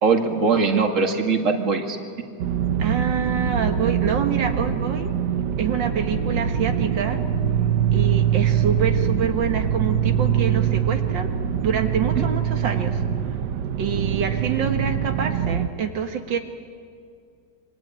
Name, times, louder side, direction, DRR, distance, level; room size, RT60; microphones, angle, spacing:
voice 1, 0.0-2.0 12.2-12.3, right 4 dB, 45° right, 3 dB, 2.5 m, -21 dB
sound 1, 2.4-15.7, right 8 dB, 70° right, 1.5 m, -23 dB
voice 2, 2.8-5.1 5.6-7.2 7.9-11.3 11.6-13.0 13.8-16.4, right 7 dB, 85° right, 5 dB, 2.2 m, -26 dB
27.5 x 24.0 x 9.0 m, 2.2 s
omnidirectional pair, 2.0 m